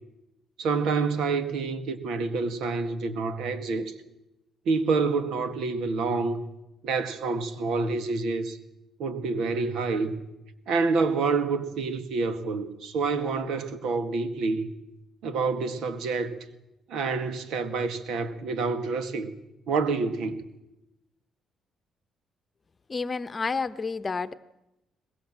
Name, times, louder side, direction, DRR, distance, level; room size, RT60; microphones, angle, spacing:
voice 1, 0.6-3.9 4.7-6.4 6.8-8.6 9.0-10.1 10.7-14.7 15.2-16.4 16.9-19.3 19.7-20.4, right 4 dB, 80° right, 2.0 m, -27 dB
voice 2, 22.9-24.3, left 4 dB, 30° left, 1.0 m, -30 dB
23.0 x 20.0 x 7.7 m
cardioid pair, 90°, 0 cm